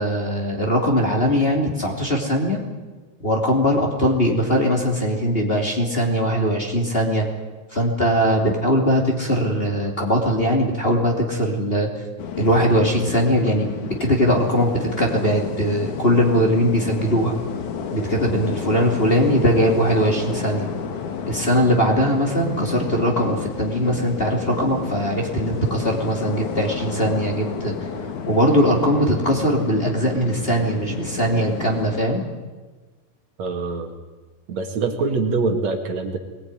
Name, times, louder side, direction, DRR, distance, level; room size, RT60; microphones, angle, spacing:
voice 1, 0.0-2.6 3.2-7.3 7.7-11.9 12.4-13.7 14.0-17.4 17.9-20.7 21.3-27.7 28.3-32.2, equal, 20° left, 0 dB, 3.2 m, -20 dB
sound 1, 12.2-32.0, left 6 dB, 85° left, 3.3 m, -31 dB
voice 2, 18.7-19.1 33.4-33.9 34.5-36.2, right 4 dB, 65° right, 5 dB, 3.2 m, -24 dB
22.0 x 20.0 x 9.9 m, 1.3 s
omnidirectional pair, 3.4 m